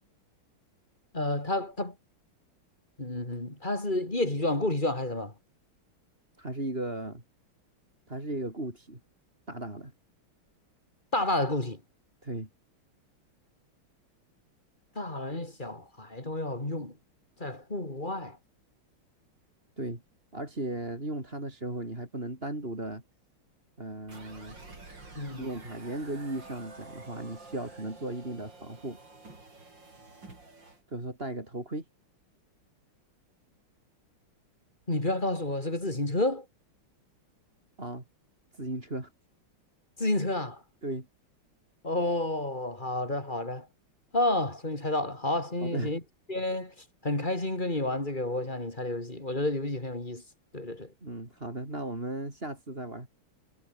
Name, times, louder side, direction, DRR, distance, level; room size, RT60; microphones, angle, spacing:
voice 1, 1.1-1.9 3.0-5.3 11.1-11.8 15.0-16.9 17.4-18.4 25.2-25.4 34.9-36.4 40.0-40.6 41.8-43.7 44.1-46.0 46.3-46.7 47.0-50.2 50.5-50.9, left 2 dB, 20° left, 4.1 m, -30 dB
voice 2, 6.4-7.2 8.1-9.0 9.5-9.9 12.2-12.5 19.8-20.0 20.3-23.0 23.8-24.6 25.4-29.0 30.9-31.9 37.8-38.0 38.5-39.1 40.8-41.1 45.6-46.0 51.0-53.1, right 1 dB, 25° right, 5.3 m, -36 dB
sound 1, 24.1-30.8, right 3 dB, 55° right, 6.3 m, -49 dB
omnidirectional pair, 2.4 m